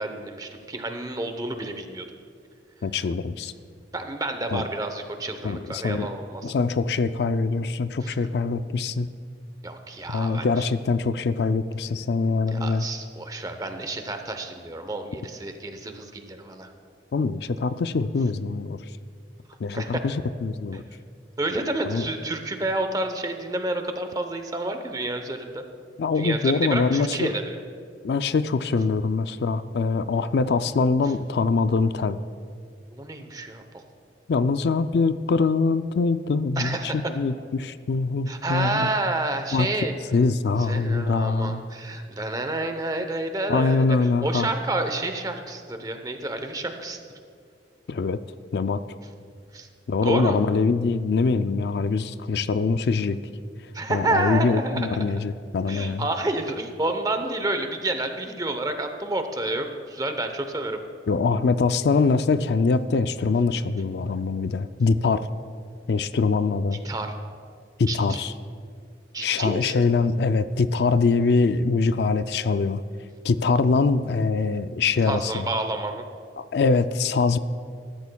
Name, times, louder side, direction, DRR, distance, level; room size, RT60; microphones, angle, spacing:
voice 1, 0.0-2.1 3.9-6.5 8.0-8.1 9.6-10.6 12.5-16.7 19.7-20.0 21.4-25.6 26.2-27.4 32.9-33.8 36.6-37.0 38.3-39.9 40.6-47.0 49.5-49.7 50.0-50.4 53.7-55.1 55.7-60.8 66.8-67.1 67.9-68.2 69.1-69.8 75.1-76.1, right 2 dB, 20° right, 7 dB, 0.8 m, -29 dB
voice 2, 2.8-3.5 4.5-4.6 5.4-6.1 6.4-9.1 10.1-12.9 17.1-18.8 19.6-20.8 21.8-22.1 26.0-27.3 28.0-32.2 34.3-38.9 39.5-39.7 40.1-41.6 43.5-44.5 47.9-48.2 48.5-48.8 49.9-53.2 53.9-56.0 61.1-65.3 65.9-66.8 67.8-68.3 69.2-72.8 73.2-75.5 76.4-77.4, left 4 dB, 65° left, 12 dB, 0.4 m, -23 dB
20.5 x 12.5 x 2.3 m, 2.2 s
head